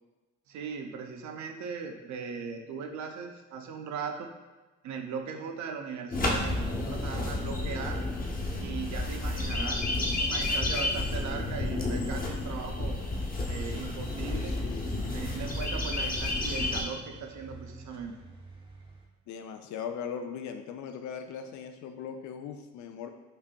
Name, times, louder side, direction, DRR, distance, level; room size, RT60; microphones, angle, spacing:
voice 1, 0.5-4.3 4.8-8.0 8.6-13.0 13.5-14.6 15.1-18.2, right 6 dB, 70° right, 4 dB, 0.6 m, -38 dB
sound 1, 6.1-16.8, left 2 dB, 30° left, 0.7 m, -31 dB
voice 2, 14.2-15.2 19.3-23.1, left 7 dB, 70° left, 7 dB, 0.4 m, -39 dB
sound 2, 14.5-19.1, right 2 dB, 20° right, 0.6 m, -45 dB
5.2 x 2.6 x 2.2 m, 1.2 s
cardioid pair, 90°, 30 cm